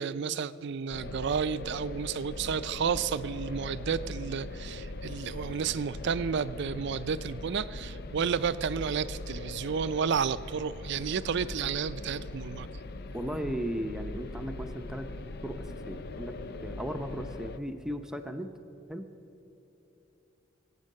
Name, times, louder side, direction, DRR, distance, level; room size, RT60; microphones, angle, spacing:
voice 1, 0.0-12.7, right 6 dB, 60° right, 15 dB, 0.4 m, -31 dB
sound 1, 0.9-17.6, left 2 dB, 50° left, 0.5 m, -41 dB
voice 2, 13.1-15.1 15.4-16.4 16.6-18.5 18.9-19.1, equal, 5° right, 6 dB, 0.6 m, -36 dB
23.5 x 8.2 x 6.5 m, 3.0 s
head